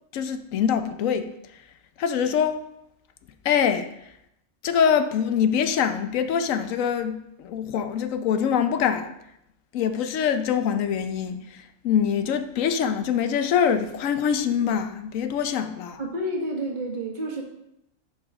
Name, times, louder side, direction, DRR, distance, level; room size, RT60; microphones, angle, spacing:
voice 1, 0.1-1.3 2.0-2.6 3.4-3.9 4.6-9.1 9.7-16.0, left 8 dB, 75° left, 1.0 m, -24 dB
voice 2, 16.0-17.4, right 1 dB, 35° right, 1.5 m, -29 dB
10.5 x 4.9 x 3.6 m
omnidirectional pair, 1.4 m